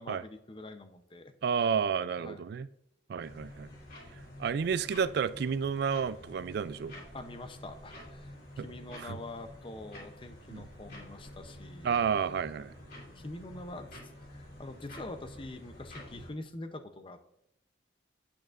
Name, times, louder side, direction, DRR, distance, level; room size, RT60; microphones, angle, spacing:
voice 1, 0.0-1.3 1.6-1.7 2.2-2.4 7.1-12.0 13.1-14.0 14.3-17.3, left 2 dB, 25° left, 0.6 m, -45 dB
voice 2, 1.4-2.7 3.1-3.7 4.4-6.9 8.6-8.7 8.9-9.2 10.5-10.6 11.8-12.7, right 6 dB, 55° right, 0.3 m, -31 dB
sound 1, 3.2-16.3, left 1 dB, 50° left, 2.8 m, -49 dB
9.1 x 8.6 x 2.5 m
head